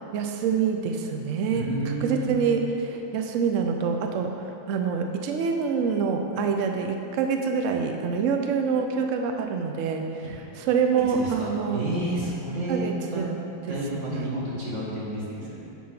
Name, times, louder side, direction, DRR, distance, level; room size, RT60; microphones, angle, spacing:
voice 1, 0.0-11.9 12.7-13.4 13.7-13.8 14.1-14.3, right 6 dB, 80° right, 4 dB, 0.6 m, -26 dB
voice 2, 1.5-2.3 11.1-13.2 13.7-15.6, right 1 dB, 45° right, -6 dB, 1.8 m, -30 dB
7.3 x 4.3 x 5.7 m, 2.8 s
omnidirectional pair, 1.8 m